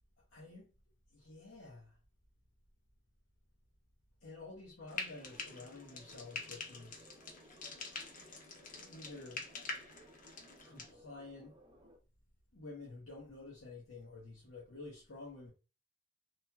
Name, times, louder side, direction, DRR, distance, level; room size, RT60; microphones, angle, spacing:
voice 1, 0.3-0.7 1.1-2.0 4.2-7.1 8.7-9.5 10.6-11.6 12.5-15.5, left 3 dB, 90° left, 0.9 m, -50 dB
Frying (food), 4.9-10.9, left 4 dB, 45° left, 0.6 m, -46 dB
sound 1, 5.2-12.0, equal, 25° right, 0.5 m, -61 dB
3.0 x 2.8 x 2.2 m
head